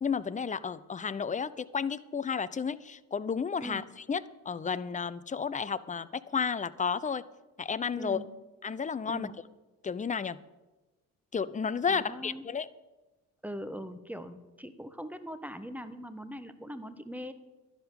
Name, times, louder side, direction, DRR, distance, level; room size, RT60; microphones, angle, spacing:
voice 1, 0.0-3.8 4.1-4.2 4.5-7.2 7.6-8.2 8.6-9.3 9.8-10.4 11.3-12.7, left 6 dB, 15° left, 16 dB, 0.5 m, -32 dB
voice 2, 8.0-8.3 9.0-9.4 11.9-12.5 13.4-17.3, equal, 5° right, 10 dB, 1.2 m, -41 dB
11.5 x 11.0 x 5.6 m, 1.1 s
figure-of-eight pair, 45°, 45 cm